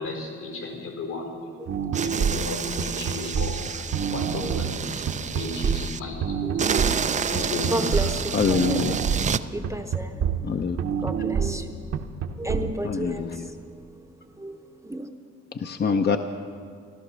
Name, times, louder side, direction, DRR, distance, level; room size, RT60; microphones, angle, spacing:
voice 1, 0.0-1.7 2.0-5.1 5.3-8.1 9.4-9.5, left 2 dB, 80° left, 1 dB, 4.5 m, -35 dB
sound 1, 1.7-12.7, right 7 dB, 55° right, 0.9 m, -27 dB
sound 2, 1.9-6.0 6.6-9.4, right 6 dB, 25° right, 0.4 m, -29 dB
voice 2, 6.4-6.9 7.7-8.8 9.5-12.0 12.4-15.1, right 1 dB, 10° right, 5 dB, 0.7 m, -34 dB
voice 3, 8.3-9.0 10.4-10.8 12.8-13.4 15.6-16.2, left 5 dB, 35° left, 7 dB, 0.6 m, -24 dB
15.0 x 13.0 x 6.2 m, 2.2 s
cardioid pair, 90°, 30 cm